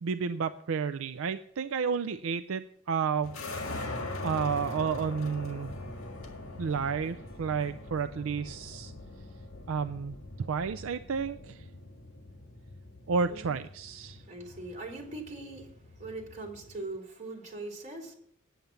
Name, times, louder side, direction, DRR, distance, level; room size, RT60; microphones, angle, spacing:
voice 1, 0.0-3.4 4.2-5.7 6.6-8.9 9.7-10.2 10.5-11.6 13.1-14.2, right 6 dB, 70° right, 10 dB, 0.4 m, -31 dB
sound 1, 3.2-16.8, left 2 dB, 75° left, 1.8 m, -42 dB
sound 2, 5.5-11.6, left 1 dB, 35° left, 0.8 m, -55 dB
voice 2, 5.8-6.7 13.3-13.6 14.1-18.2, right 2 dB, 35° right, -1 dB, 3.8 m, -42 dB
9.3 x 8.7 x 6.9 m, 0.68 s
head